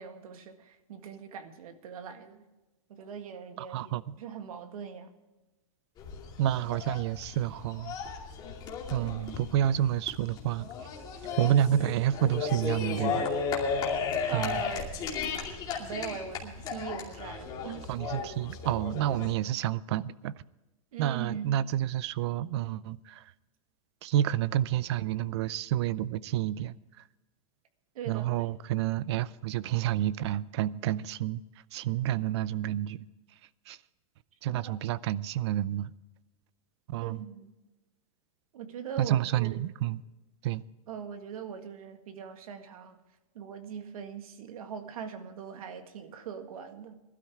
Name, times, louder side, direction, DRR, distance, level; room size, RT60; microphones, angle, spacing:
voice 1, 0.0-2.4 2.9-3.9 4.2-5.1 9.0-9.4 14.3-14.9 15.8-17.9 20.9-21.6 27.9-28.5 34.5-34.8 37.0-37.5 38.5-39.6 40.9-43.0 43.3-46.9, right 7 dB, 75° right, 1.9 m, -41 dB
voice 2, 3.6-4.1 6.4-8.0 8.9-10.7 11.4-13.3 14.3-14.6 17.9-20.3 21.0-23.3 24.0-26.8 28.1-31.4 31.7-33.1 33.7-33.8 34.4-35.9 36.9-37.2 39.0-40.0 40.4-40.6, right 12 dB, 50° right, 0.5 m, -29 dB
sound 1, 6.0-19.3, left 5 dB, 20° left, 2.5 m, -35 dB
20.0 x 12.5 x 3.6 m
supercardioid pair, 165°, 18 cm